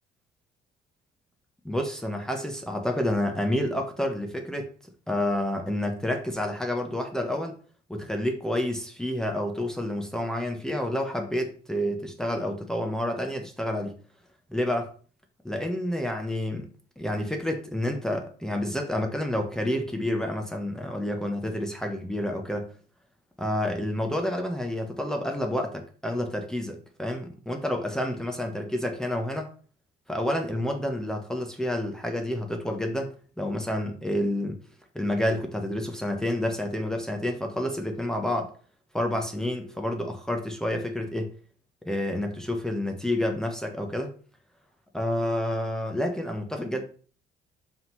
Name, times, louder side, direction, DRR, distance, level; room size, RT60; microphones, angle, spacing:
voice 1, 1.6-4.7 5.1-7.5 7.9-13.9 14.5-15.0 15.4-22.7 23.4-29.5 30.1-34.6 34.9-38.5 38.9-41.3 41.8-44.1 44.9-46.8, left 1 dB, 5° left, 3 dB, 1.1 m, -29 dB
5.5 x 3.8 x 5.8 m, 0.42 s
cardioid pair, 110°, 17 cm